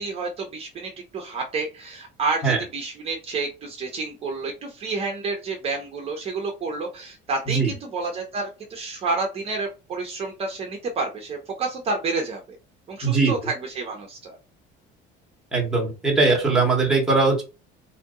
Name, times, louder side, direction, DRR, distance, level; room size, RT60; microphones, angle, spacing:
voice 1, 0.0-12.6 12.9-14.4, right 3 dB, 30° right, 1 dB, 0.9 m, -29 dB
voice 2, 13.0-13.3 15.5-17.4, right 3 dB, 5° right, -2 dB, 1.5 m, -20 dB
4.3 x 2.7 x 3.8 m, 0.30 s
cardioid pair, 155°, 19 cm